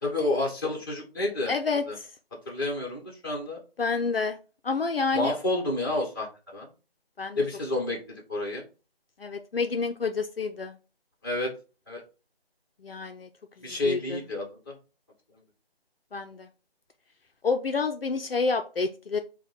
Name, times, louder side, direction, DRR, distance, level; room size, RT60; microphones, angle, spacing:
voice 1, 0.0-1.5 1.9-2.0 2.4-3.6 5.1-6.7 7.3-8.6 11.2-11.5 11.9-12.0 13.6-14.7, left 2 dB, 20° left, -1 dB, 1.2 m, -29 dB
voice 2, 1.5-2.1 3.8-4.4 4.6-5.4 7.2-7.4 9.2-10.8 12.8-13.3 13.6-14.2 16.1-16.5 17.4-19.2, left 4 dB, 65° left, 6 dB, 0.6 m, -29 dB
4.9 x 2.2 x 4.5 m, 0.33 s
figure-of-eight pair, 165°, 31 cm